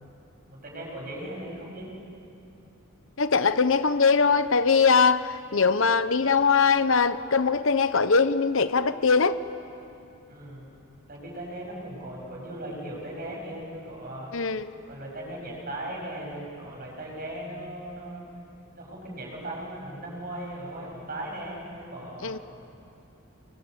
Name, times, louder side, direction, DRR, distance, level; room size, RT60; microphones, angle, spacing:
voice 1, 0.5-1.9 10.3-10.7 11.1-14.3 14.8-18.2 18.7-22.4, right 1 dB, 45° right, -1 dB, 7.8 m, -38 dB
voice 2, 3.2-9.4 14.3-14.7 22.2-22.4, left 5 dB, 65° left, 12 dB, 0.9 m, -21 dB
29.0 x 23.0 x 8.4 m, 2.7 s
head